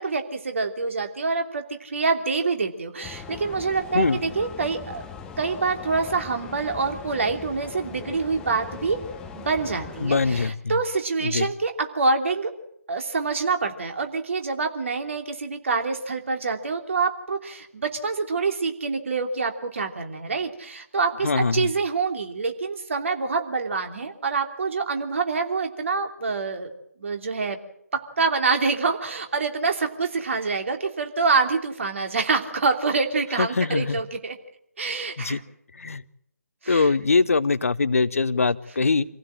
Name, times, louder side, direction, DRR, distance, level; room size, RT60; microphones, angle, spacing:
voice 1, 0.0-5.0 5.4-9.0 9.3-12.5 12.9-26.7 27.0-27.6 27.9-34.4 34.8-35.4 36.6-36.9, right 4 dB, 50° right, 5 dB, 2.9 m, -26 dB
sound 1, 3.0-10.5, left 7 dB, 10° left, 0.8 m, -40 dB
voice 2, 10.0-10.7 11.2-11.5 21.2-21.7 33.4-34.0 35.2-35.4 35.8-36.0 36.7-39.1, left 4 dB, 55° left, 16 dB, 0.8 m, -22 dB
26.5 x 16.0 x 7.6 m, 0.75 s
figure-of-eight pair, 150°, 9 cm